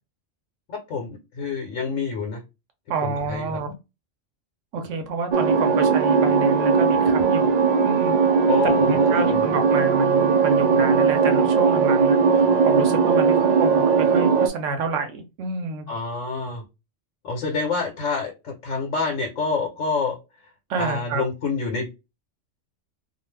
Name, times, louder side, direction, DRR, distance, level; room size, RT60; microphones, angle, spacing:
voice 1, 0.7-2.4 3.0-3.6 8.5-9.4 15.9-16.6 17.2-20.2 20.8-21.9, left 4 dB, 80° left, 1.1 m, -27 dB
voice 2, 2.9-3.7 4.7-8.2 8.6-15.9 20.7-21.2, right 4 dB, 85° right, 1.0 m, -28 dB
sound 1, 5.3-14.5, right 5 dB, 70° right, 0.4 m, -19 dB
2.5 x 2.3 x 3.2 m
omnidirectional pair, 1.3 m